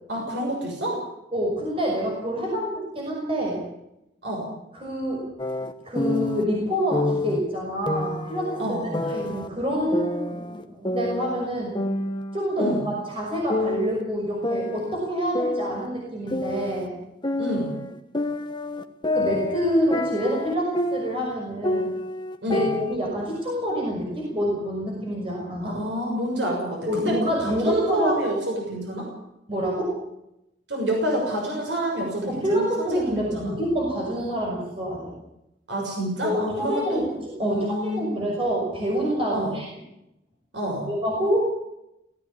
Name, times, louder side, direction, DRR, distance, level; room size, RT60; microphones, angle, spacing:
voice 1, 0.1-1.0 4.2-4.5 8.6-9.0 12.6-12.8 17.4-17.7 22.4-22.7 25.6-29.1 30.7-33.5 35.7-37.0 37.4-38.3 39.3-39.5 40.5-40.9, right 1 dB, 85° right, -1 dB, 6.6 m, -28 dB
voice 2, 1.3-3.7 4.7-5.3 5.8-11.8 12.3-17.0 19.1-21.9 22.5-25.8 26.9-28.2 29.5-30.0 32.2-35.1 36.2-39.7 40.9-41.4, equal, 30° right, -2 dB, 6.1 m, -27 dB
sound 1, 5.4-6.4 6.9-7.4 7.9-9.5 9.9-11.5 11.7-13.2 13.5-14.0 14.4-16.9 17.2-21.3 21.6-23.0, left 2 dB, 25° left, 1.3 m, -28 dB
18.5 x 17.5 x 8.7 m, 0.86 s
head